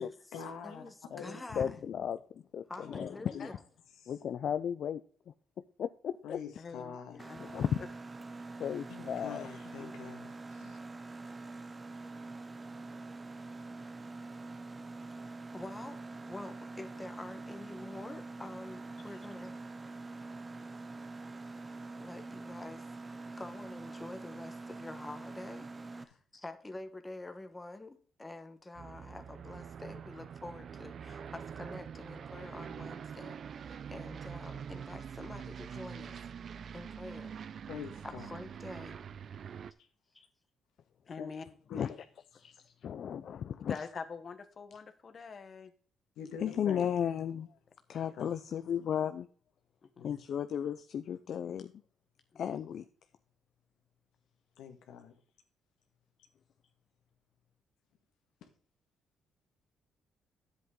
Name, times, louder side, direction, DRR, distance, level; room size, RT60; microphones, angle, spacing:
voice 1, 0.0-1.4 2.8-2.9 3.3-3.5 4.0-4.1 6.2-7.2 8.9-10.8 37.7-38.3 41.2-41.3 41.7-41.8 46.2-46.9 48.2-48.3 50.0-50.2 54.6-55.1, left 7 dB, 85° left, 1.7 m, -45 dB
voice 2, 0.6-1.8 2.7-3.6 15.0-19.5 22.0-36.2 36.7-37.4 38.0-39.0 40.1-40.2, left 2 dB, 15° left, 1.1 m, -47 dB
voice 3, 1.5-3.5 4.1-5.0 5.8-6.4 7.4-7.8 8.6-9.5 10.6-10.7 41.7-41.9 42.4-42.5 42.8-43.8 46.4-47.5 47.9-49.3 50.0-51.7 52.4-52.8, left 8 dB, 65° left, 0.5 m, -35 dB
voice 4, 6.6-7.4 9.8-10.2 41.1-41.5 41.8-41.9 43.7-45.7 48.1-48.2 49.8-50.1, left 5 dB, 45° left, 1.3 m, -45 dB
Mechanisms, 7.2-26.0, right 3 dB, 25° right, 0.8 m, -45 dB
Aircraft, 28.7-39.7, right 7 dB, 55° right, 0.5 m, -45 dB
10.0 x 8.0 x 3.8 m
cardioid pair, 90°, 0 cm